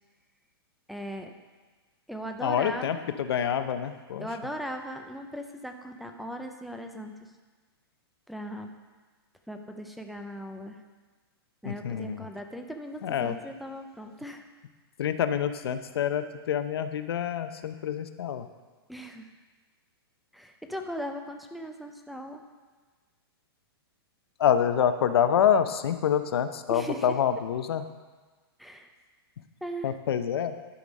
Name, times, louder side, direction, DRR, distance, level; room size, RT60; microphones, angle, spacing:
voice 1, 0.9-1.3 2.1-3.0 4.2-7.3 8.3-8.7 9.5-10.8 11.6-14.5 18.9-19.3 20.3-22.4 26.7-27.2 28.6-28.9 29.6-29.9, equal, ahead, 5 dB, 0.4 m, -38 dB
voice 2, 2.4-4.3 11.6-12.2 13.0-13.4 15.0-18.5 24.4-27.8 29.8-30.5, left 9 dB, 70° left, 10 dB, 0.7 m, -26 dB
11.5 x 5.1 x 5.2 m, 1.4 s
hypercardioid pair, 165°, 13 cm